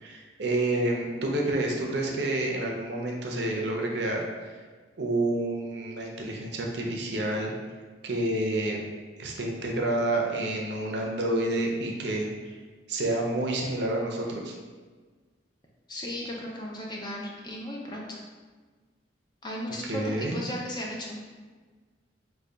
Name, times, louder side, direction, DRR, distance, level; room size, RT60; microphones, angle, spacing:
voice 1, 0.0-4.5 5.0-7.5 8.0-8.8 9.2-12.6 12.9-14.5 19.8-20.4, right 1 dB, 60° right, 0 dB, 0.5 m, -29 dB
voice 2, 15.9-18.2 19.4-21.2, left 1 dB, 20° left, -2 dB, 0.4 m, -36 dB
3.3 x 2.2 x 3.8 m, 1.4 s
head